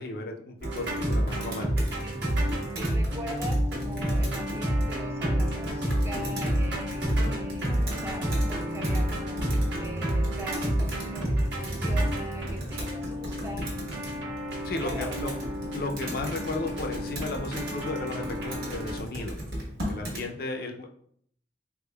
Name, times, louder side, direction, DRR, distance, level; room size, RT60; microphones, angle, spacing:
voice 1, 0.0-1.7 14.6-15.3 15.7-19.4 19.9-20.9, left 2 dB, 55° left, 3 dB, 0.4 m, -34 dB
Computer keyboard, 0.6-20.3, equal, 60° right, 1.0 m, -38 dB
sound 1, 0.6-19.0, equal, 75° right, 1.2 m, -29 dB
voice 2, 2.8-9.4 9.8-13.7 14.7-15.4, right 1 dB, 15° right, 1 dB, 0.4 m, -42 dB
3.4 x 3.4 x 2.2 m, 0.65 s
head